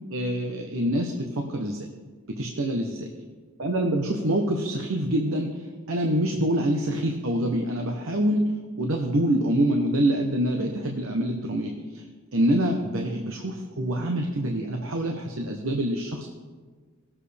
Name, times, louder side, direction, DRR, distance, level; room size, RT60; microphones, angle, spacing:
voice 1, 0.1-1.9 2.3-3.1 3.6-8.5 8.8-12.0 12.3-16.3, right 1 dB, 70° right, 2 dB, 0.9 m, -26 dB
18.5 x 7.4 x 3.4 m, 1.5 s
head